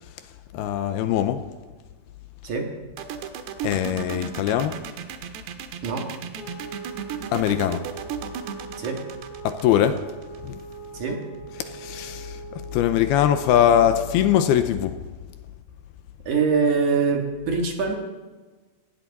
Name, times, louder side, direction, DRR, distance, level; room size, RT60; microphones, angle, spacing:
voice 1, 0.5-1.4 3.6-4.8 7.3-7.8 9.4-10.0 10.4-10.6 11.6-12.4 12.7-14.9, left 10 dB, 80° left, 9 dB, 2.6 m, -21 dB
sound 1, 3.0-10.7, right 8 dB, 90° right, 3.3 m, -34 dB
voice 2, 5.8-6.1 8.8-9.0 10.9-11.2 16.3-18.0, right 5 dB, 55° right, 1 dB, 2.9 m, -23 dB
sound 2, 6.3-14.7, right 5 dB, 40° left, 3.0 m, -41 dB
19.5 x 17.0 x 4.1 m, 1.3 s
omnidirectional pair, 4.8 m